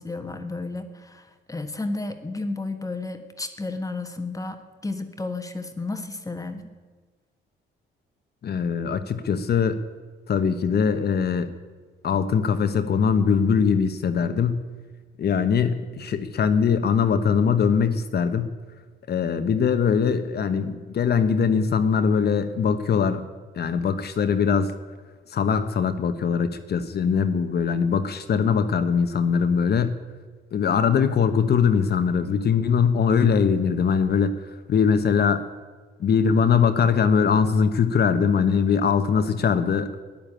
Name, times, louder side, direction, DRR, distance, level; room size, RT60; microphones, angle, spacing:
voice 1, 0.0-6.7, left 3 dB, 15° left, 7 dB, 1.3 m, -32 dB
voice 2, 8.4-9.8 10.3-11.5 12.0-14.6 15.2-18.5 19.1-23.3 23.6-24.7 25.3-29.9 30.5-34.3 34.7-35.4 36.0-40.0, left 6 dB, 55° left, 9 dB, 1.1 m, -21 dB
12.5 x 10.5 x 8.9 m, 1.4 s
cardioid pair, 90°, 20 cm